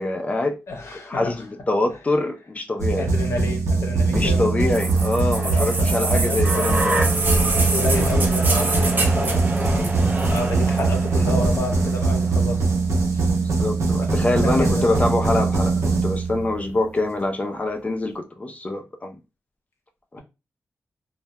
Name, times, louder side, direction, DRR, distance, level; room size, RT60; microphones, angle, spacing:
voice 1, 0.0-0.6 1.1-3.1 4.1-7.0 13.4-19.1 20.1-20.2, left 2 dB, 30° left, 0.4 m, -25 dB
voice 2, 0.7-1.4 1.9-2.0 3.0-4.7 5.4-6.9 7.2-10.0 10.3-12.7 13.1-13.3 14.0-14.1 14.3-14.8, left 2 dB, 65° left, 0.6 m, -30 dB
sound 1, 2.8-16.7, right 3 dB, 80° right, 0.7 m, -22 dB
sound 2, 4.7-12.6 13.7-13.8, right 2 dB, 35° right, 0.5 m, -26 dB
2.1 x 2.1 x 2.7 m
wide cardioid pair, 135°, 5 cm